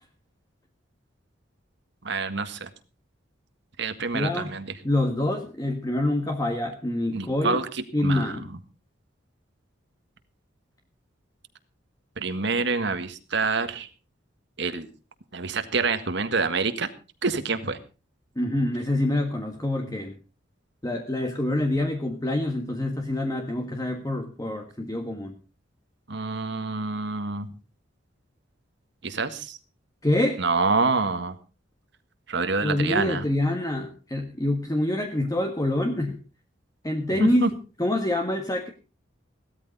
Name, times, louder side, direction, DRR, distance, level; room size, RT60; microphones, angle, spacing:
voice 1, 2.0-2.7 3.8-4.8 7.1-8.6 12.2-13.9 14.6-14.9 15.3-16.9 17.2-17.8 26.1-27.5 29.0-29.6 30.4-31.3 32.3-33.2 37.1-37.5, right 4 dB, 65° right, 9 dB, 1.7 m, -27 dB
voice 2, 4.1-4.5 4.8-7.6 7.9-8.5 18.4-20.1 20.8-25.3 30.0-30.4 32.6-36.2 36.8-37.4 37.8-38.7, left 1 dB, 20° left, 4 dB, 1.5 m, -26 dB
17.0 x 13.5 x 4.1 m, 0.35 s
head